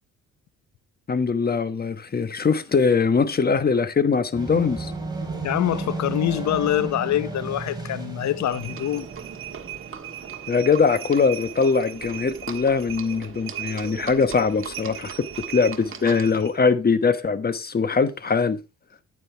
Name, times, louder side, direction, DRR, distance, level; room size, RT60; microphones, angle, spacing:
voice 1, 1.1-4.9 10.5-15.3 15.5-18.6, left 5 dB, 30° left, 1.2 m, -22 dB
sound 1, 4.3-11.2, right 3 dB, 15° right, 3.6 m, -34 dB
voice 2, 5.4-9.1, left 12 dB, 65° left, 0.9 m, -25 dB
Livestock farm animals working animals, 8.5-16.6, right 9 dB, 45° right, 1.6 m, -37 dB
9.4 x 9.2 x 3.5 m
cardioid pair, 90°, 30 cm